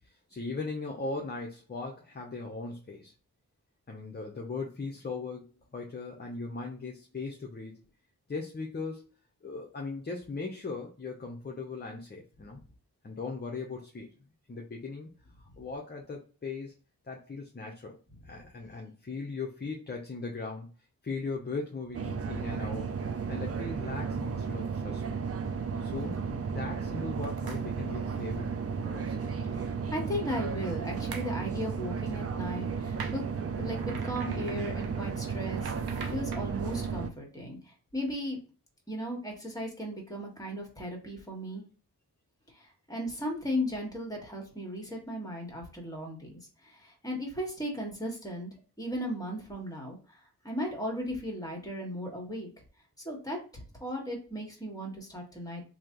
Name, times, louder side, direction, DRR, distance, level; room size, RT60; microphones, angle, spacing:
voice 1, 0.3-3.1 3.9-7.9 8.3-9.1 9.4-12.6 13.0-14.2 14.5-15.1 15.4-16.7 17.0-18.0 18.2-20.7 21.0-22.9 23.3-25.2 25.8-28.5 28.8-29.3, left 3 dB, 30° left, 0 dB, 0.7 m, -38 dB
sound 1, 21.9-37.1, right 6 dB, 40° right, 0.5 m, -34 dB
sound 2, 27.2-27.7 31.1-31.3 33.0-36.9, right 5 dB, 80° right, 0.7 m, -45 dB
voice 2, 29.9-33.2 33.5-35.7 36.1-37.6 37.9-38.4 38.9-41.6 42.5-46.3 46.6-48.5 48.8-50.2 50.4-52.5 53.0-55.6, equal, 10° left, 1 dB, 1.5 m, -36 dB
3.1 x 2.7 x 3.8 m, 0.35 s
wide cardioid pair, 70°, 36 cm